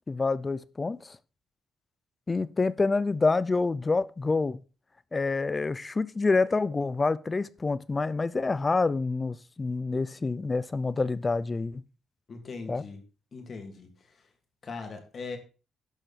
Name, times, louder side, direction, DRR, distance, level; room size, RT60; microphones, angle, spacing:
voice 1, 0.1-1.2 2.3-4.6 5.1-11.8 12.7-12.8, left 3 dB, 25° left, 0.6 m, -27 dB
voice 2, 12.3-13.0 13.3-14.3 14.6-15.4, left 4 dB, 45° left, 2.7 m, -40 dB
11.5 x 6.1 x 4.3 m
cardioid pair, 90°, 0 cm